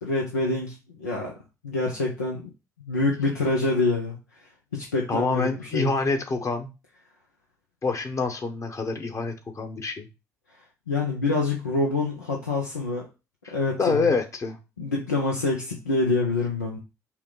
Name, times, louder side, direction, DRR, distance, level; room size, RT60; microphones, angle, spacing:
voice 1, 0.0-1.3 1.6-2.4 2.9-4.2 4.7-5.9 10.9-13.1 13.5-14.1 14.8-16.8, left 3 dB, 85° left, -2 dB, 0.7 m, -26 dB
voice 2, 5.1-6.7 7.8-10.1 13.4-14.6, left 4 dB, 35° left, 6 dB, 1.1 m, -26 dB
5.7 x 2.3 x 3.8 m, 0.28 s
figure-of-eight pair, 50°, 9 cm